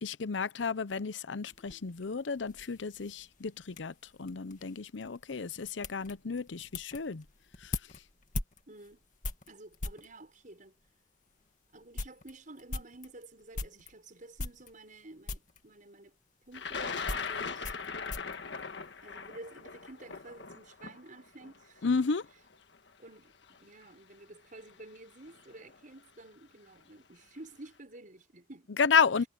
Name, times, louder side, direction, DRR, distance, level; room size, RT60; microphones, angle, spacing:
voice 1, 0.0-7.2 7.6-7.7 21.8-22.2 28.8-29.2, left 5 dB, 90° left, 0.7 m, -31 dB
sound 1, 1.5-10.1 10.9-11.0 11.4-11.5 11.8-13.9 14.4-15.0 15.3-15.6 16.5-19.4 19.6-20.2, left 2 dB, 45° left, 2.0 m, -42 dB
voice 2, 8.7-9.0 9.5-10.8 11.7-16.1 16.5-17.8 19.0-22.0 23.0-28.7, right 2 dB, 45° right, 6.2 m, -51 dB
Thunder, 16.5-22.6 23.5-23.6 24.7-25.0 25.3-25.8, left 5 dB, 70° left, 1.6 m, -39 dB
head